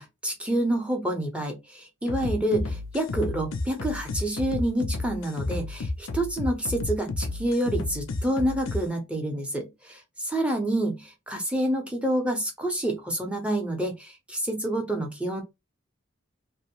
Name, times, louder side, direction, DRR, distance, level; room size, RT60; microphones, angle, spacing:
voice 1, 0.0-15.4, right 1 dB, 5° right, 0.6 m, -28 dB
sound 1, 2.1-8.8, left 2 dB, 70° left, 0.4 m, -31 dB
2.6 x 2.0 x 2.9 m
head